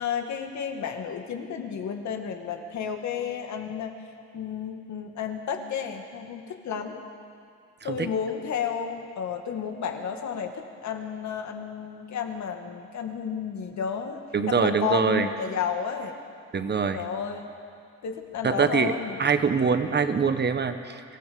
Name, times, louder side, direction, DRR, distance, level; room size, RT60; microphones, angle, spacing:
voice 1, 0.0-3.9 4.3-7.0 7.8-14.2 14.5-16.2 16.9-17.5 18.0-19.2, left 7 dB, 65° left, 4 dB, 2.1 m, -32 dB
voice 2, 14.3-15.3 16.5-17.0 18.4-18.9 19.2-21.0, right 6 dB, 35° right, 9 dB, 1.3 m, -24 dB
24.5 x 15.0 x 7.0 m, 2.3 s
cardioid pair, 90°, 30 cm